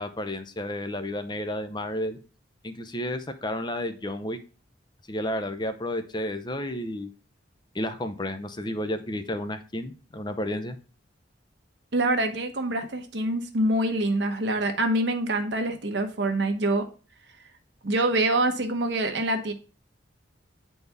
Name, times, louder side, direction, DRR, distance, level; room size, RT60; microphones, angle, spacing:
voice 1, 0.0-2.2 2.6-4.4 5.1-7.1 7.7-10.8, left 1 dB, 25° left, 0.7 m, -31 dB
voice 2, 11.9-16.8 17.8-19.5, right 1 dB, 65° right, 1.1 m, -25 dB
9.4 x 4.3 x 3.5 m
head